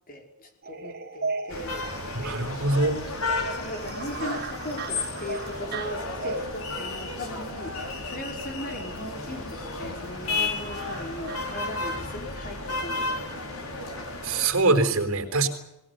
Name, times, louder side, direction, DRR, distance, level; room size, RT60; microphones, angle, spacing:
voice 1, 0.1-1.9 3.5-13.6, left 1 dB, 45° left, 4 dB, 5.3 m, -38 dB
sound 1, 0.6-12.1, right 4 dB, 50° right, 2.5 m, -39 dB
sound 2, 1.5-14.5, left 3 dB, 80° left, 5.3 m, -33 dB
voice 2, 2.1-3.0 14.2-15.5, right 3 dB, 70° right, 5 dB, 4.7 m, -23 dB
22.5 x 19.5 x 9.7 m, 0.86 s
head